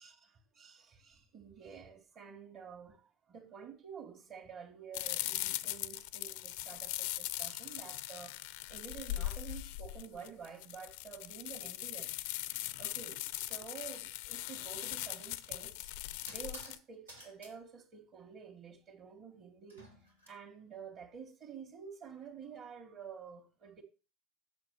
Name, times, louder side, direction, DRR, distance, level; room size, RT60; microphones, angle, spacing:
voice 1, 0.0-12.1 12.8-15.9 16.3-19.8 20.3-23.8, right 6 dB, 40° right, 1.9 m, -50 dB
sound 1, 4.9-16.8, left 16 dB, 60° left, 0.5 m, -40 dB
sound 2, 15.0-15.2 16.3-16.8 17.1-17.5 19.7-20.3, right 1 dB, 85° right, 2.5 m, -52 dB
8.0 x 6.6 x 6.6 m
figure-of-eight pair, 70°, 0 cm